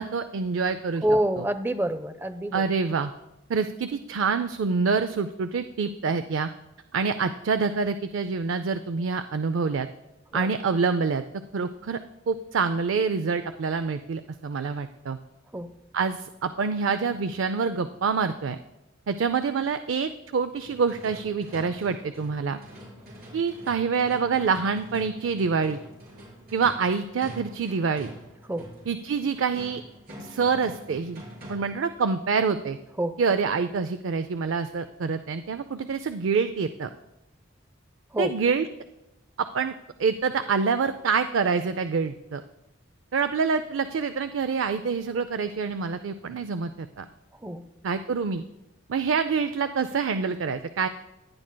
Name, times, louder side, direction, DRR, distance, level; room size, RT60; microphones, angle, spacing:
voice 1, 0.0-1.0 1.4-1.5 2.5-3.1 3.5-6.5 6.9-9.9 10.3-11.2 11.5-12.0 12.3-15.2 15.9-18.6 19.1-22.6 23.3-25.8 26.5-28.1 28.9-29.8 30.2-32.8 33.2-36.9 38.2-38.7 39.4-39.7 40.0-42.4 43.1-47.1 47.8-48.4 48.9-50.9, right 5 dB, 85° right, 10 dB, 0.4 m, -26 dB
voice 2, 1.0-2.6 10.3-10.5 15.5-15.7 28.5-28.7 33.0-33.2 38.1-38.3 47.4-47.6, right 1 dB, 10° right, 10 dB, 0.5 m, -27 dB
sound 1, 20.6-31.9, equal, 50° right, 4.7 m, -46 dB
17.5 x 10.5 x 2.2 m, 0.95 s
head